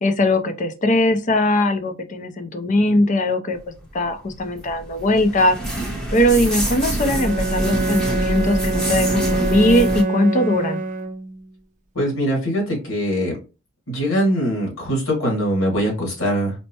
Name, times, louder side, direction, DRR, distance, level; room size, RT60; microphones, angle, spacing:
voice 1, 0.0-3.6 3.9-5.6 6.1-10.8, left 1 dB, 40° left, 8 dB, 0.5 m, -20 dB
sound 1, 4.1-10.0, right 1 dB, 5° left, 0.8 m, -26 dB
Bowed string instrument, 7.0-11.5, right 2 dB, 35° right, 0.4 m, -24 dB
voice 2, 12.0-13.4 13.9-16.5, equal, 80° left, -1 dB, 1.9 m, -22 dB
4.4 x 2.1 x 2.7 m, 0.31 s
head